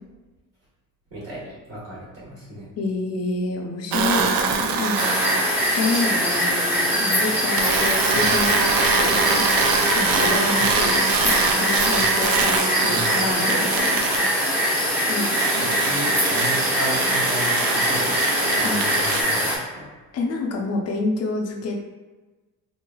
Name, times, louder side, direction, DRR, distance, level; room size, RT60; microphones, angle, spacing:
voice 1, 1.1-2.7 8.1-8.3 10.5-10.8 11.9-12.1 12.9-13.2 15.7-19.9, equal, 45° right, -8 dB, 1.3 m, -34 dB
voice 2, 2.8-5.2 5.7-9.4 10.0-14.0 15.1-15.7 18.6-18.9 20.1-21.8, left 3 dB, 45° left, 1 dB, 0.6 m, -28 dB
sound 1, 3.9-5.5 7.6-14.3 15.2-19.2, right 5 dB, 75° right, 0.5 m, -24 dB
sound 2, 5.0-19.6, equal, 5° right, 0.9 m, -22 dB
4.3 x 3.1 x 2.3 m, 1.2 s
cardioid pair, 175°, 36 cm